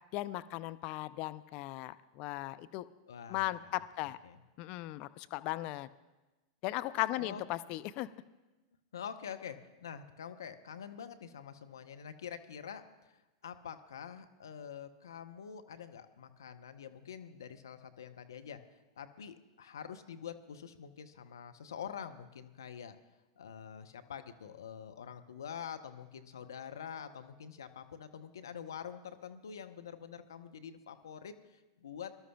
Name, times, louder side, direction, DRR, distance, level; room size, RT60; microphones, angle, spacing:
voice 1, 0.1-2.9 3.3-4.2 4.6-5.9 6.6-8.1, left 17 dB, 50° left, 13 dB, 0.5 m, -37 dB
voice 2, 3.1-3.8 4.2-4.4 7.2-7.4 8.9-18.6 19.0-23.0 23.4-32.2, left 8 dB, 80° left, 9 dB, 0.8 m, -46 dB
23.0 x 12.5 x 2.3 m, 1.1 s
hypercardioid pair, 100°, 2 cm